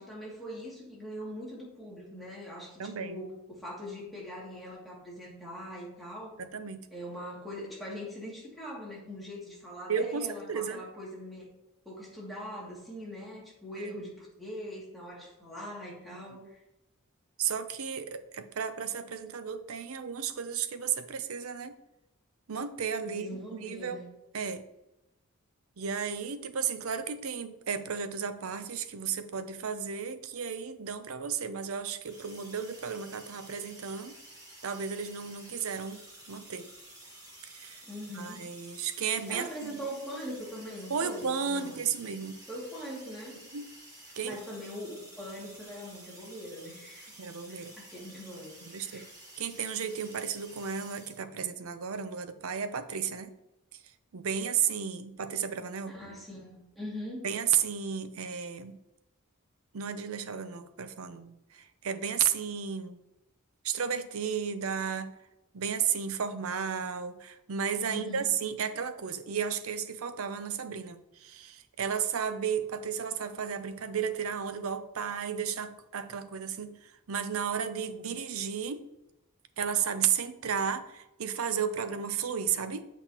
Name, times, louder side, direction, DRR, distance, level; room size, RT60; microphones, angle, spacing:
voice 1, 0.0-6.4 6.9-11.5 11.9-16.6 23.1-24.1 37.8-38.5 39.3-41.8 42.5-43.4 44.2-47.2 47.5-49.1 55.9-57.3 67.9-68.3, equal, ahead, -6 dB, 2.3 m, -42 dB
voice 2, 2.8-3.2 6.4-6.9 9.9-10.8 13.7-13.9 16.1-16.5 17.4-21.8 22.5-24.0 24.3-24.6 25.8-34.1 34.6-36.7 37.5-37.8 38.2-39.8 40.9-42.3 43.5-43.6 44.2-44.4 47.2-47.7 48.6-49.1 49.4-53.3 54.1-55.9 57.2-58.8 59.7-63.0 63.6-65.1 65.5-78.8 79.6-82.8, right 7 dB, 75° right, 11 dB, 0.6 m, -33 dB
sound 1, 32.0-51.2, right 1 dB, 15° right, 1.9 m, -51 dB
7.9 x 6.0 x 2.9 m, 0.93 s
head